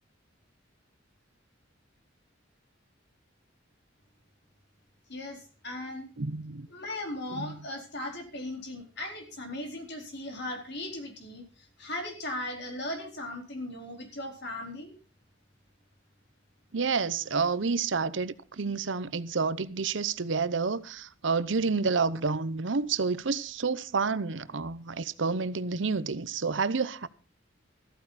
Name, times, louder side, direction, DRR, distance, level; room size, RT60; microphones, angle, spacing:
voice 1, 5.1-6.1 6.7-14.9, left 1 dB, 60° left, 4.2 m, -38 dB
voice 2, 6.2-6.7 7.3-7.5 16.7-27.1, right 4 dB, 65° right, 0.8 m, -29 dB
14.5 x 13.5 x 4.1 m
head